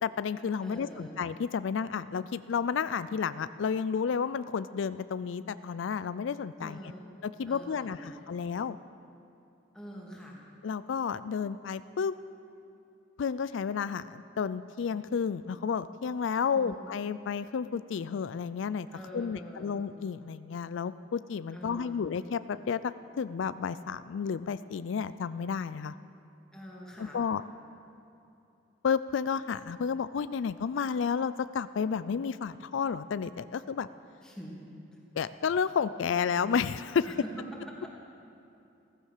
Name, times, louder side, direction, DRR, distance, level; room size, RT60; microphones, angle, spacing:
voice 1, 0.0-6.8 7.2-8.8 10.6-12.1 13.2-18.9 19.1-25.9 27.0-27.4 28.8-33.9 35.1-37.1, left 6 dB, 80° left, 14 dB, 0.4 m, -31 dB
voice 2, 0.6-1.2 6.6-7.0 7.5-8.1 9.7-10.4 16.5-16.8 18.9-19.8 21.5-22.0 26.5-27.2 34.2-34.7 37.0-37.1 37.7-37.9, equal, 5° left, -4 dB, 2.6 m, -45 dB
15.0 x 14.5 x 6.6 m, 2.8 s
head